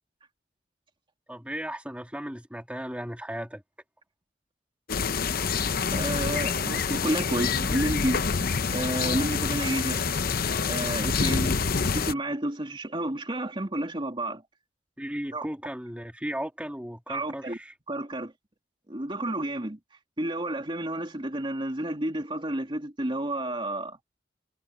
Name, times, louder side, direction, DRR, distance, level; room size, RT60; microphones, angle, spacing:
voice 1, 1.3-3.6 15.0-17.7, equal, 5° right, 2.9 m, -36 dB
sound 1, 4.9-12.1, left 5 dB, 55° left, 0.8 m, -27 dB
voice 2, 5.9-8.2 8.7-10.0 10.6-11.6 11.9-14.4 15.3-15.4 17.1-17.6 17.9-18.3 18.9-19.8 20.2-24.0, right 1 dB, 30° right, 2.9 m, -30 dB
head